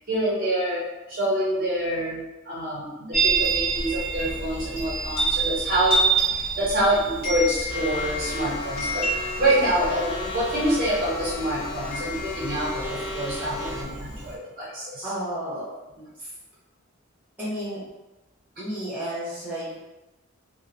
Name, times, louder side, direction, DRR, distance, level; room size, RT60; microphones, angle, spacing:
voice 1, 0.1-6.0 6.3-15.1, right 1 dB, 45° right, -7 dB, 0.6 m, -26 dB
Chime, 3.1-14.3, right 3 dB, 45° left, 1.3 m, -28 dB
sound 1, 7.7-13.8, left 2 dB, 60° left, 0.5 m, -35 dB
voice 2, 15.0-16.3 17.4-17.8 18.6-19.8, equal, 10° right, -9 dB, 1.0 m, -32 dB
2.8 x 2.0 x 2.5 m, 1.0 s
head